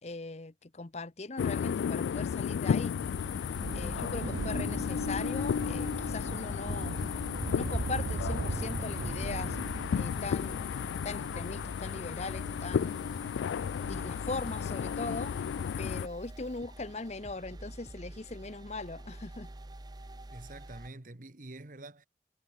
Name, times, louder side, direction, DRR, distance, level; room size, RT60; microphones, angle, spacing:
voice 1, 0.0-2.9 3.7-7.0 7.5-9.6 9.9-10.7 11.0-13.0 13.8-15.4 15.8-19.5, left 3 dB, 40° left, 0.8 m, -40 dB
sound 1, 1.4-16.1, left 7 dB, 85° left, 0.3 m, -33 dB
Thunder, 2.5-15.4 16.3-16.4, right 2 dB, 80° right, 0.8 m, -40 dB
sound 2, 3.0-20.9, right 1 dB, 25° right, 0.8 m, -47 dB
voice 2, 20.3-22.1, right 2 dB, 45° right, 1.5 m, -47 dB
head